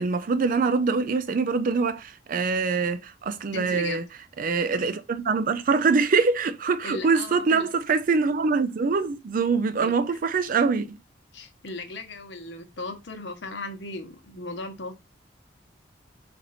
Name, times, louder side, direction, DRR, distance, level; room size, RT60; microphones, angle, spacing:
voice 1, 0.0-4.0 4.4-11.0, right 4 dB, 50° right, 0.4 m, -24 dB
voice 2, 3.5-4.0 6.8-7.7 9.8-10.2 11.3-15.0, left 2 dB, 70° left, 1.0 m, -37 dB
4.3 x 2.6 x 4.0 m
head